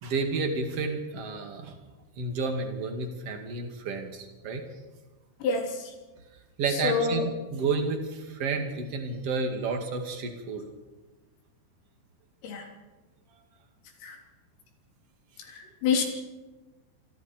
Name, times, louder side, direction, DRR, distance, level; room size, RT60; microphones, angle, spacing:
voice 1, 0.0-1.7 2.2-4.6 6.6-10.6, right 4 dB, 40° right, 4 dB, 2.5 m, -31 dB
voice 2, 5.4-5.9 6.7-7.3 12.4-12.7 14.0-14.2 15.4-16.0, left 5 dB, 75° left, 2 dB, 5.9 m, -28 dB
27.5 x 23.0 x 4.6 m, 1.2 s
omnidirectional pair, 5.9 m